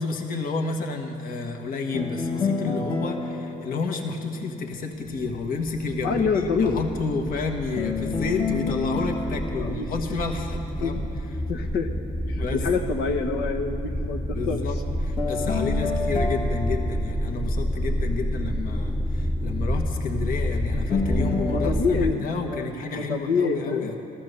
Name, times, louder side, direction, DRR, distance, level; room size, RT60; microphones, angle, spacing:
voice 1, 0.0-11.0 12.4-12.6 14.3-24.0, left 4 dB, 55° left, 3 dB, 1.5 m, -30 dB
sound 1, 1.9-5.0 7.8-11.0 15.2-18.2 20.9-21.7, left 4 dB, 30° left, 1.3 m, -30 dB
sound 2, 5.2-22.1, equal, ahead, 0.6 m, -29 dB
voice 2, 6.0-6.8 9.5-9.9 10.8-11.1 11.5-11.9 12.3-14.6 21.5-23.9, left 5 dB, 75° left, 5 dB, 1.4 m, -26 dB
15.5 x 13.5 x 6.8 m, 2.6 s
cardioid pair, 110°, 17 cm